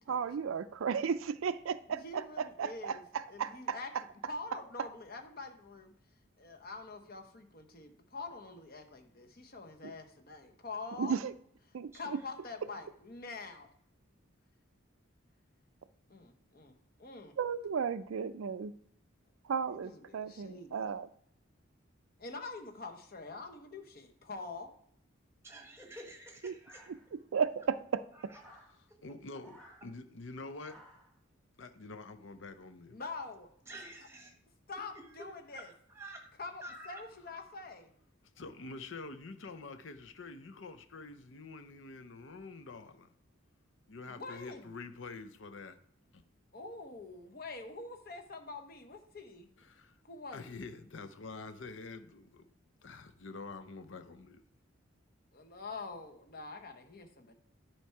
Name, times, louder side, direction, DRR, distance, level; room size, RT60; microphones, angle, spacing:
voice 1, 0.1-3.8 11.0-11.3 11.7-11.9 17.4-18.7 19.4-21.1 26.4-26.5 27.3-28.0, right 6 dB, 80° right, 0.4 m, -34 dB
voice 2, 1.9-3.0 3.3-3.9 4.3-5.9 6.4-11.1 11.9-13.7 16.1-16.7 17.0-17.3 19.7-20.9 22.2-24.7 32.9-33.5 34.7-35.7 36.4-37.9 44.0-44.7 46.5-49.5 50.0-50.6 55.3-57.4, left 3 dB, 45° left, 1.0 m, -45 dB
voice 3, 11.9-12.3 25.4-26.9 28.1-28.4 28.9-29.0 33.7-34.4 35.2-35.3 35.5-36.3 36.6-37.0, right 1 dB, 15° right, 1.1 m, -49 dB
sound 1, 26.6-27.4 28.3-28.7 29.4-29.8 30.6-31.1, equal, 5° left, 1.9 m, -57 dB
voice 4, 29.0-30.8 31.6-33.0 38.4-43.1 43.9-45.8 46.1-46.2 49.6-50.0 50.3-52.5 52.8-54.4, left 3 dB, 65° left, 0.7 m, -47 dB
10.0 x 4.5 x 4.7 m
head